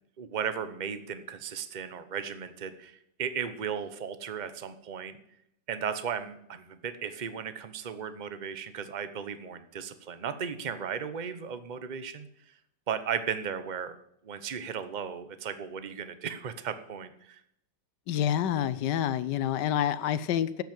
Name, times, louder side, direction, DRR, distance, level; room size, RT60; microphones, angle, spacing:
voice 1, 0.2-5.2 5.7-12.3 12.9-14.0 14.2-17.4, right 7 dB, 50° right, 11 dB, 0.5 m, -36 dB
voice 2, 18.1-20.6, left 10 dB, 70° left, 14 dB, 1.2 m, -28 dB
9.5 x 7.9 x 8.8 m, 0.74 s
omnidirectional pair, 2.1 m